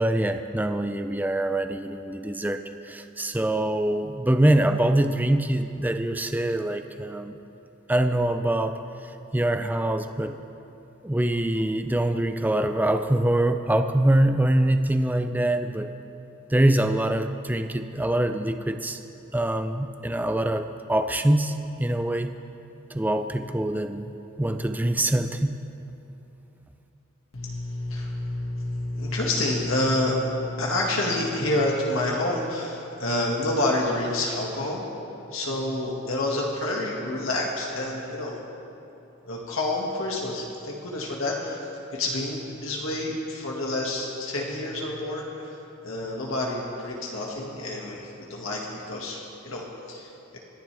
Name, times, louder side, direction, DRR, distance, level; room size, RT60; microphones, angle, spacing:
voice 1, 0.0-7.3 7.9-8.8 9.3-10.4 11.0-15.9 16.5-19.0 19.3-22.3 22.9-25.6, right 1 dB, 10° right, 8 dB, 0.4 m, -24 dB
voice 2, 27.3-34.8 35.3-38.4 39.3-45.6 45.8-50.4, left 1 dB, 75° left, -3 dB, 1.9 m, -28 dB
26.0 x 10.5 x 3.4 m, 3.0 s
head